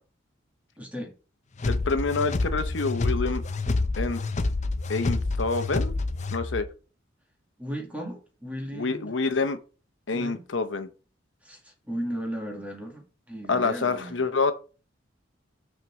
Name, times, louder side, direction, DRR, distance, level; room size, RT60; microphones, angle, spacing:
voice 1, 0.8-1.1 7.6-9.1 10.1-10.4 11.4-14.2, equal, 10° right, 2.1 m, -36 dB
voice 2, 1.6-3.4 4.0-4.2 4.9-5.9 6.3-6.7 8.7-9.6 10.1-10.9 13.5-14.5, left 4 dB, 80° left, 0.9 m, -27 dB
sound 1, 1.6-6.7, left 3 dB, 40° left, 0.6 m, -28 dB
6.5 x 4.5 x 6.2 m
head